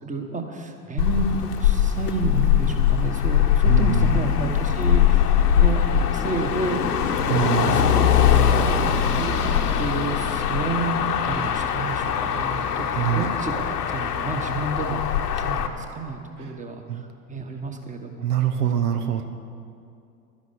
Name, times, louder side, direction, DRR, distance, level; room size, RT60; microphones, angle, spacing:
voice 1, 0.0-5.8 6.1-6.9 7.1-8.5 9.2-11.0 11.2-13.6 13.9-17.0 17.3-18.3, right 3 dB, 15° right, 5 dB, 1.5 m, -30 dB
Motor vehicle (road), 1.0-15.7, left 9 dB, 85° left, 1.1 m, -21 dB
voice 2, 3.6-4.2 7.3-8.0 12.4-12.5 13.0-13.3 16.4-16.5 16.9-17.0 18.2-19.3, right 9 dB, 75° right, 8 dB, 1.0 m, -25 dB
11.5 x 10.5 x 7.0 m, 2.5 s
hypercardioid pair, 90°, 46 cm